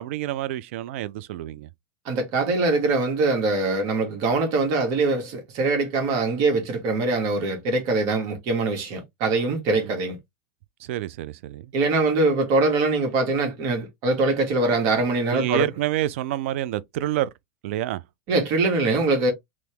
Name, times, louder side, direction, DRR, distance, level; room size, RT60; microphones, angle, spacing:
voice 1, 0.0-1.7 9.7-9.9 10.8-11.7 15.3-17.3 17.6-18.0, right 14 dB, 70° right, 0.4 m, -28 dB
voice 2, 2.0-10.2 11.7-15.7 18.3-19.3, right 3 dB, 55° right, 1.7 m, -23 dB
3.0 x 2.9 x 3.4 m
supercardioid pair, 120°, 7 cm